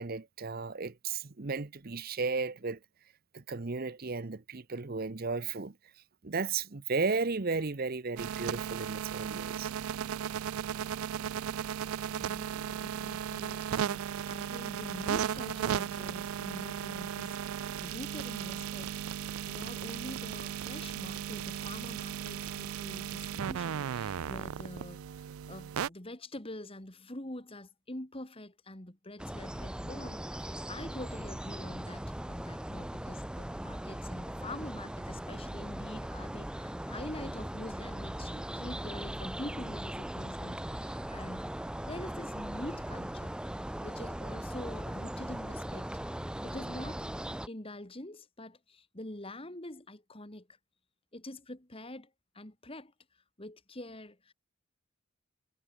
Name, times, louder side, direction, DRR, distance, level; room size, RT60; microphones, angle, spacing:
voice 1, 0.0-2.8 3.3-5.8 6.2-9.7, right 4 dB, 45° right, 0.8 m, -34 dB
sound 1, 8.2-25.9, right 9 dB, 85° right, 0.4 m, -36 dB
voice 2, 12.1-41.4 41.9-43.3 43.8-46.0 46.4-47.1 47.5-50.5 51.1-52.9 53.4-54.3, left 1 dB, 25° left, 2.2 m, -45 dB
sound 2, 29.2-47.5, right 1 dB, 5° right, 0.4 m, -39 dB
head